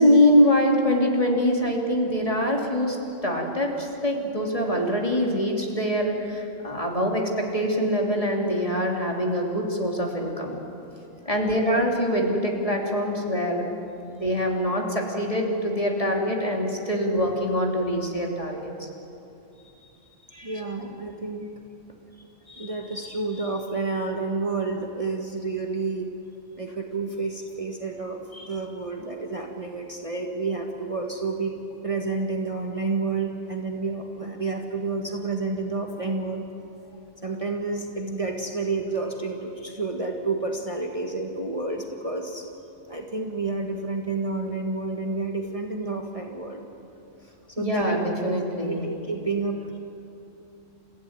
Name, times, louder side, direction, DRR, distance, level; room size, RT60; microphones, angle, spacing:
voice 1, 0.0-3.0 3.2-10.6 11.2-13.6 14.1-18.9 20.3-20.6 28.3-28.5 47.6-48.9, equal, 25° left, 0 dB, 3.0 m, -24 dB
voice 2, 20.4-21.5 22.4-26.1 26.5-31.6 31.8-36.5 37.2-42.5 42.9-46.6 47.6-48.0 48.2-48.3 48.6-49.8, right 3 dB, 25° right, 1 dB, 1.7 m, -30 dB
29.5 x 15.5 x 9.5 m, 2.8 s
omnidirectional pair, 1.3 m